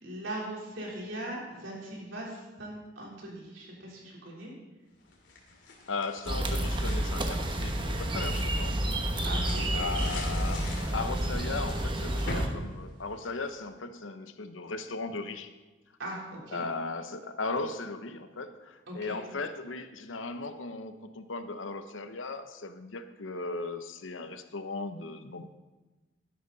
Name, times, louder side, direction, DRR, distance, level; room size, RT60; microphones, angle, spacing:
voice 1, 0.0-4.5 9.2-10.0 16.0-16.6 18.9-19.2, right 1 dB, 85° right, -3 dB, 3.7 m, -40 dB
sound 1, 5.1-7.1 7.6-13.6, left 1 dB, 75° left, 2.5 m, -41 dB
voice 2, 5.9-9.1 9.7-15.5 16.5-25.6, left 3 dB, 90° left, 9 dB, 0.9 m, -37 dB
sound 2, 6.3-12.5, right 1 dB, 25° right, 1.0 m, -30 dB
12.5 x 11.0 x 4.0 m, 1.1 s
head